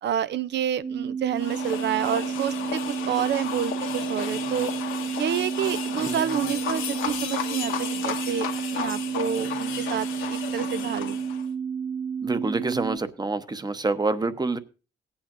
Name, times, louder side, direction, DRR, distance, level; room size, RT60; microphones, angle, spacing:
voice 1, 0.0-4.7 5.2-8.5 8.7-11.2, right 10 dB, 60° right, 0.6 m, -29 dB
sound 1, 0.8-13.0, right 7 dB, 40° right, 1.3 m, -31 dB
sound 2, 1.4-11.5, left 8 dB, 80° left, 1.5 m, -33 dB
voice 2, 6.0-6.3 12.2-14.6, right 3 dB, 20° right, 0.9 m, -27 dB
17.5 x 8.8 x 2.6 m
cardioid pair, 90°, 20 cm